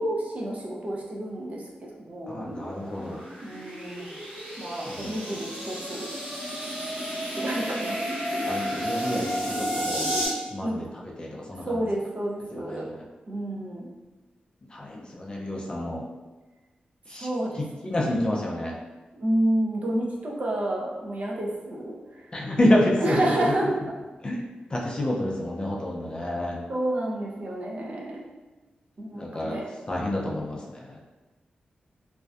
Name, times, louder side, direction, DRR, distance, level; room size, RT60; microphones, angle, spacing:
voice 1, 0.0-2.5 3.4-4.2 4.6-6.1 7.3-8.0 8.3-8.5 10.6-10.8 11.7-12.8 13.3-13.9 17.2-17.6 17.9-18.6 19.1-22.3 23.0-23.8 26.7-28.2 29.0-29.6, right 1 dB, 50° right, -3 dB, 0.5 m, -30 dB
voice 2, 2.3-3.2 4.8-5.2 8.5-10.2 10.5-10.8 11.2-11.8 12.5-13.0 14.7-16.0 17.1-17.3 17.8-18.7 22.3-23.2 24.2-24.4 24.7-26.6 29.1-29.6 29.9-31.0, left 1 dB, 30° left, -3 dB, 0.4 m, -28 dB
sound 1, 2.3-10.3, equal, 80° right, 1.1 m, -32 dB
2.5 x 2.1 x 2.3 m, 1.2 s
wide cardioid pair, 95°, 3 cm